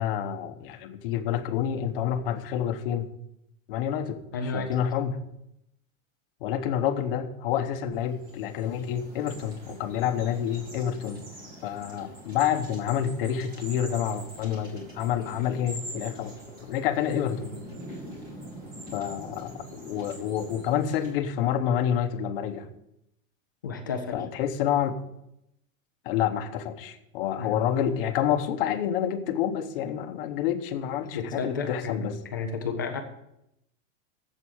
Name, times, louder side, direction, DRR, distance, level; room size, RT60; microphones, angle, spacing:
voice 1, 0.0-3.1 3.7-4.2 4.5-5.2 6.4-11.2 11.6-17.5 18.9-22.7 24.1-25.0 26.0-32.2, left 9 dB, 45° left, 8 dB, 1.0 m, -28 dB
voice 2, 4.3-4.8 23.6-24.2 27.4-27.6 31.1-32.1 32.3-33.0, left 4 dB, 15° left, 4 dB, 0.3 m, -31 dB
sound 1, 8.0-21.1, right 1 dB, 20° right, 2.6 m, -44 dB
7.8 x 7.6 x 8.6 m, 0.81 s
supercardioid pair, 175°, 41 cm